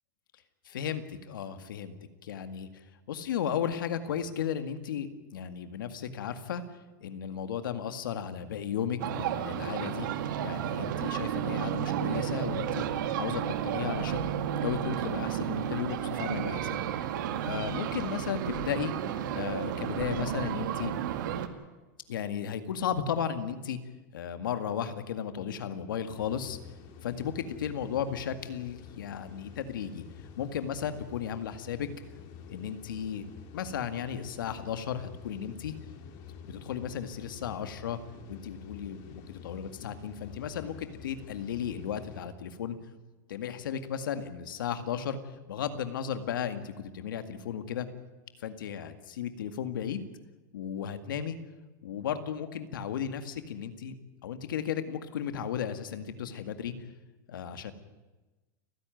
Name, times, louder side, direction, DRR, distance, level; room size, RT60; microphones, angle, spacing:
voice 1, 0.7-1.9 2.2-6.6 7.0-10.1 10.4-12.9 13.2-16.8 17.4-18.9 19.3-20.9 22.1-23.8 24.1-26.6 27.0-30.0 30.4-31.9 32.5-33.3 33.5-35.8 36.4-38.0 38.3-42.8 43.3-45.2 45.5-47.9 48.4-50.1 50.5-51.4 51.8-53.9 54.2-56.7 57.3-57.7, left 8 dB, 90° left, 9 dB, 2.0 m, -35 dB
sound 1, 9.0-21.5, right 10 dB, 70° right, 1.9 m, -32 dB
sound 2, 26.2-42.3, left 7 dB, 50° left, 3.3 m, -48 dB
30.0 x 11.0 x 9.2 m, 1.2 s
supercardioid pair, 140°, 11 cm